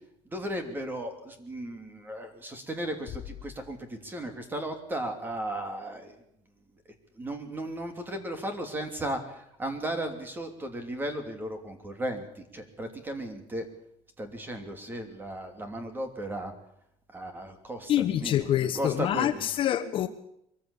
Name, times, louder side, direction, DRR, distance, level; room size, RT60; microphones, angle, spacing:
voice 1, 0.3-6.2 7.2-13.6 14.2-16.5 17.1-18.5 18.7-19.5, right 1 dB, 15° right, 7 dB, 3.0 m, -35 dB
Bass drum, 3.1-4.5, left 11 dB, 60° left, 3.2 m, -45 dB
voice 2, 17.9-20.1, left 11 dB, 45° left, 8 dB, 1.2 m, -26 dB
23.0 x 14.5 x 8.4 m, 0.76 s
cardioid pair, 155°, 13 cm